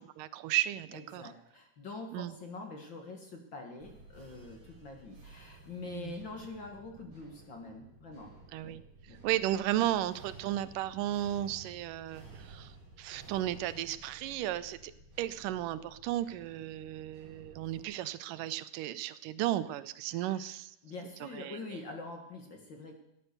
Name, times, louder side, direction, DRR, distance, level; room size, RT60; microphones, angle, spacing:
voice 1, 0.2-1.3 2.1-2.4 5.9-6.1 8.5-8.8 9.1-12.7 13.0-14.9 15.2-20.8 21.3-21.8, right 13 dB, 85° right, 15 dB, 2.3 m, -34 dB
voice 2, 0.9-8.3 8.6-8.8 9.1-9.2 20.1-20.5 20.8-23.0, left 3 dB, 45° left, 3 dB, 2.0 m, -45 dB
sound 1, 3.8-17.8, right 3 dB, 55° right, 5.0 m, -54 dB
17.0 x 9.9 x 6.7 m, 0.81 s
omnidirectional pair, 3.7 m